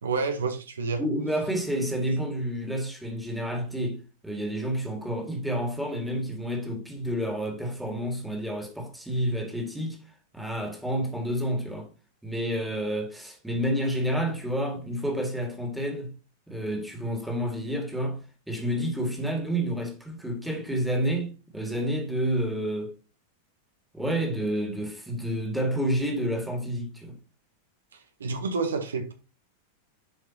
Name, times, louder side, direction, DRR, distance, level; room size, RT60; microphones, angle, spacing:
voice 1, 0.0-1.0 27.9-29.1, right 4 dB, 70° right, 1.0 m, -29 dB
voice 2, 1.0-10.0 10.3-11.9 12.2-16.1 16.5-18.2 18.5-22.9 23.9-27.2, equal, ahead, 2.0 m, -29 dB
10.5 x 4.9 x 2.8 m
figure-of-eight pair, 90°, 0 cm